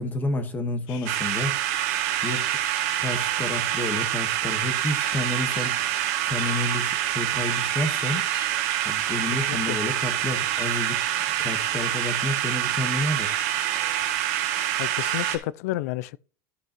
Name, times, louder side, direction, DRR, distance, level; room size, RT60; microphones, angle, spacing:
voice 1, 0.0-1.5 2.2-2.6 3.0-5.8 6.2-8.3 8.8-11.0 11.4-13.3, left 2 dB, 20° left, 1.5 m, -30 dB
sound 1, 0.9-15.4, left 11 dB, 60° left, 1.1 m, -43 dB
sound 2, 1.1-15.4, right 13 dB, 70° right, 1.3 m, -26 dB
voice 2, 14.8-16.2, left 15 dB, 75° left, 0.4 m, -30 dB
13.0 x 6.1 x 3.0 m
supercardioid pair, 130°, 8 cm